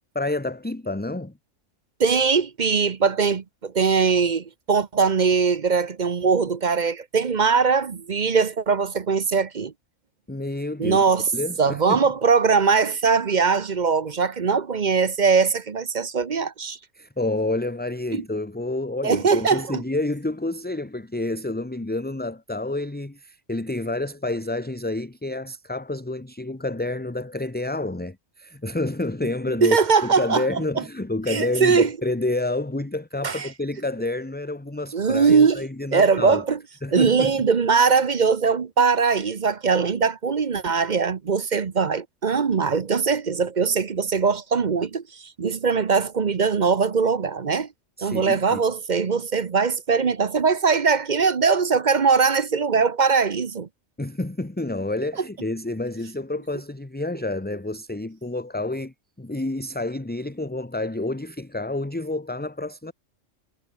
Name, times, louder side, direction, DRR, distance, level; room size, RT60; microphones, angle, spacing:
voice 1, 0.1-1.3 10.3-11.0 11.3-12.0 17.0-36.4 36.8-37.3 48.0-48.6 54.0-62.9, left 2 dB, 10° left, 0.9 m, -29 dB
voice 2, 2.0-9.7 10.8-11.3 11.6-16.8 18.1-18.2 19.0-19.8 29.6-30.6 31.3-31.9 33.2-33.5 34.9-35.6 35.9-36.6 36.9-45.0 45.4-47.7 48.0-53.7, right 5 dB, 40° right, 0.9 m, -21 dB
omnidirectional pair, 1.3 m